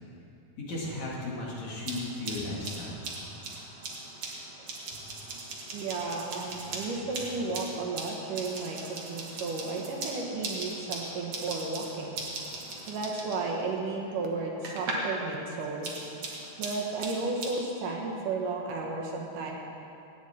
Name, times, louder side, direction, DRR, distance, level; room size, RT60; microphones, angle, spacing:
voice 1, 0.6-3.1, left 2 dB, 60° left, -5 dB, 3.2 m, -35 dB
sound 1, 1.7-15.2 15.5-17.5, right 3 dB, 55° right, 2.3 m, -39 dB
voice 2, 5.7-12.2 12.9-16.1 16.6-19.5, right 3 dB, 75° right, 0 dB, 2.8 m, -33 dB
17.5 x 9.1 x 4.3 m, 2.7 s
omnidirectional pair, 3.9 m